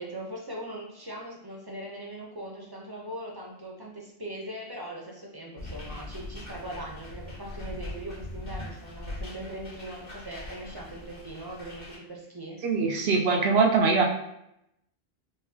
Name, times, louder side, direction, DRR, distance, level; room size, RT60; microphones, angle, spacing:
voice 1, 0.0-12.6, right 1 dB, 30° right, -2 dB, 0.6 m, -40 dB
sound 1, 5.6-12.0, left 1 dB, 45° left, 1.2 m, -41 dB
voice 2, 12.6-14.0, right 4 dB, 80° right, 2 dB, 0.9 m, -22 dB
4.8 x 2.4 x 2.7 m, 0.81 s
omnidirectional pair, 1.0 m